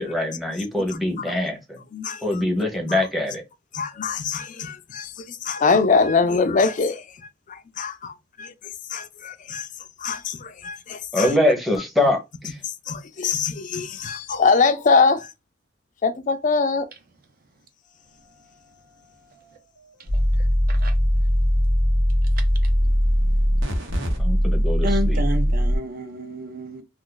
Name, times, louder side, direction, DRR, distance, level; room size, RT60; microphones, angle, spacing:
voice 1, 0.0-1.8 2.2-3.4 11.1-12.6 24.2-25.2, left 1 dB, ahead, 0.8 m, -23 dB
voice 2, 1.9-2.4 3.7-7.0 7.8-8.5 8.9-9.7 10.0-11.4 12.9-15.3 16.0-16.9, left 4 dB, 40° left, 0.4 m, -23 dB
sound 1, 20.1-25.8, equal, 80° right, 1.0 m, -20 dB
voice 3, 24.8-26.8, equal, 50° right, 0.6 m, -30 dB
2.4 x 2.4 x 3.8 m
head